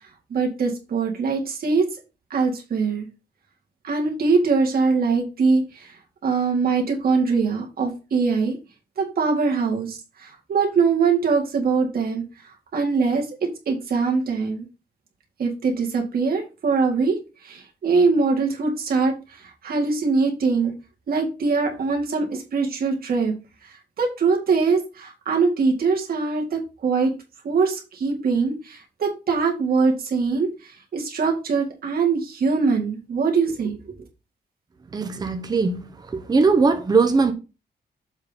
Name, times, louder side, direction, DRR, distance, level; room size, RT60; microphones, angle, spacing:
voice 1, 0.3-1.9 2.3-3.0 3.8-5.9 6.2-8.6 9.0-12.2 12.7-14.7 15.4-17.2 17.4-19.2 19.6-20.7 21.1-23.3 24.0-27.2 27.4-30.5 30.9-33.8, right 4 dB, 60° right, 2.1 m, -22 dB
voice 2, 34.9-35.8 36.1-37.3, right 4 dB, 25° right, 0.8 m, -19 dB
7.3 x 3.8 x 5.2 m
wide cardioid pair, 165°, 18 cm